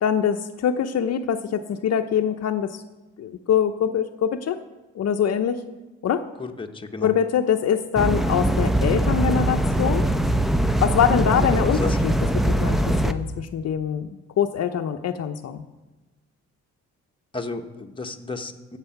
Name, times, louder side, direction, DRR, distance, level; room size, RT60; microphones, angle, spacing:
voice 1, 0.0-2.8 3.2-4.6 4.9-5.6 6.0-6.2 7.0-10.1 10.8-14.1 14.4-15.6, left 8 dB, 55° left, 7 dB, 0.7 m, -24 dB
voice 2, 6.4-7.1 11.2-12.0 17.3-18.8, left 3 dB, 15° left, 3 dB, 1.1 m, -33 dB
sound 1, 8.0-13.1, right 1 dB, ahead, 0.7 m, -22 dB
15.0 x 7.5 x 5.8 m, 1.1 s
cardioid pair, 90°, 30 cm